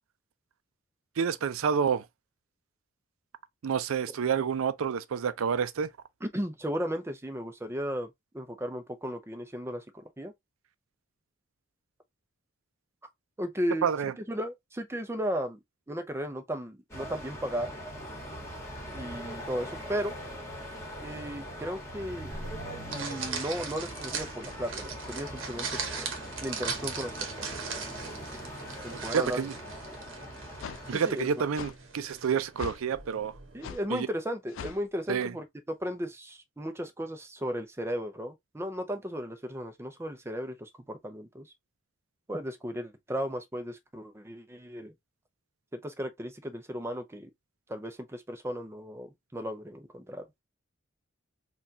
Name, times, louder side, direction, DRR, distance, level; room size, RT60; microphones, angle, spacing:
voice 1, 1.2-2.1 3.6-5.9 13.8-14.1 28.9-29.5 30.9-33.3 33.9-34.1 35.1-35.3, right 7 dB, 85° right, 0.4 m, -29 dB
voice 2, 6.2-8.1 8.3-10.3 13.4-13.9 14.3-15.6 15.9-17.7 18.9-20.1 21.0-22.3 22.9-26.1 26.4-27.6 28.8-29.4 30.9-31.3 33.5-41.5 42.3-44.9 45.7-47.3 47.7-50.3, equal, 15° right, 0.5 m, -35 dB
sound 1, 16.9-30.9, equal, 15° left, 1.4 m, -41 dB
sound 2, 22.3-33.7, right 5 dB, 65° right, 0.9 m, -40 dB
sound 3, 29.7-29.8 30.6-30.8 31.5-31.8 32.6-32.8 33.6-33.8 34.5-34.8, left 7 dB, 65° left, 0.4 m, -40 dB
4.1 x 2.3 x 2.5 m
head